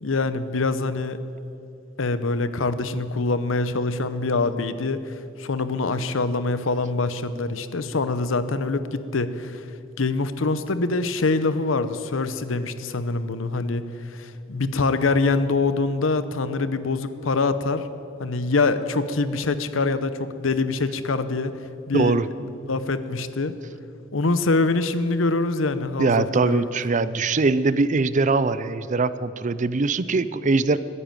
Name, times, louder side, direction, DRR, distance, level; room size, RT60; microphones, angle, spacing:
voice 1, 0.0-1.2 2.0-9.7 10.0-17.9 18.2-21.5 21.9-22.2 22.7-23.5 24.1-26.7, left 3 dB, 70° left, 12 dB, 0.8 m, -24 dB
voice 2, 21.9-22.5 26.0-30.8, right 3 dB, 40° right, 15 dB, 0.5 m, -22 dB
15.0 x 9.8 x 9.1 m, 2.6 s
head